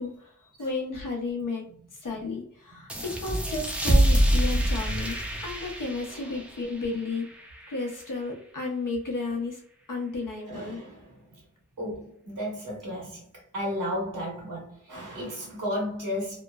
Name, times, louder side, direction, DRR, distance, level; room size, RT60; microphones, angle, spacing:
voice 1, 0.0-1.6 1.9-7.3 7.7-9.6 9.9-10.8, left 3 dB, 75° left, 0.8 m, -33 dB
sound 1, 2.9-8.1, equal, 5° right, 0.5 m, -26 dB
voice 2, 6.1-6.4 10.5-11.4 11.8-13.3 13.5-16.4, equal, 75° right, 1.3 m, -34 dB
3.0 x 2.0 x 2.3 m
wide cardioid pair, 65°, 32 cm